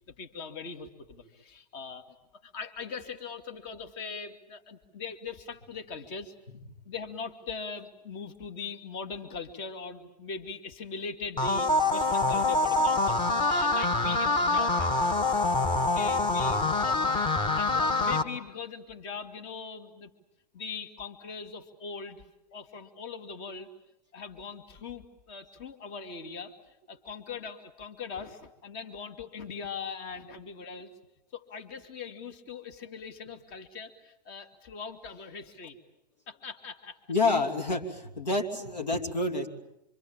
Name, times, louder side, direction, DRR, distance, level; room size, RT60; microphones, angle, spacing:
voice 1, 0.1-2.0 2.3-6.3 6.8-15.0 15.2-15.5 15.8-17.1 17.5-20.1 20.5-22.3 22.5-23.7 24.1-30.9 31.3-35.8 36.3-37.1, left 5 dB, 45° left, 8 dB, 2.4 m, -41 dB
sound 1, 11.4-18.2, left 2 dB, 20° left, 1.6 m, -25 dB
voice 2, 37.1-39.5, left 3 dB, 85° left, 6 dB, 3.1 m, -28 dB
26.0 x 25.5 x 8.9 m, 0.81 s
hypercardioid pair, 115°, 21 cm